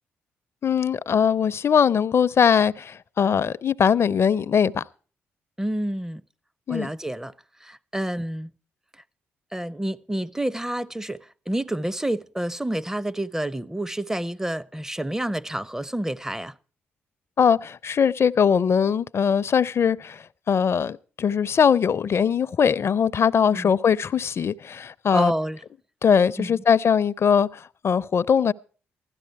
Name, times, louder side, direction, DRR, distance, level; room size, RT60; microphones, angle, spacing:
voice 1, 0.6-4.8 6.7-6.9 17.4-25.3 26.0-28.5, left 7 dB, 50° left, 0.6 m, -21 dB
voice 2, 5.6-6.2 6.7-7.3 7.6-8.5 9.5-16.5 23.5-23.7 25.1-25.6 26.4-26.6, right 1 dB, 10° right, 0.6 m, -29 dB
16.0 x 12.5 x 4.6 m
hypercardioid pair, 45°, 6 cm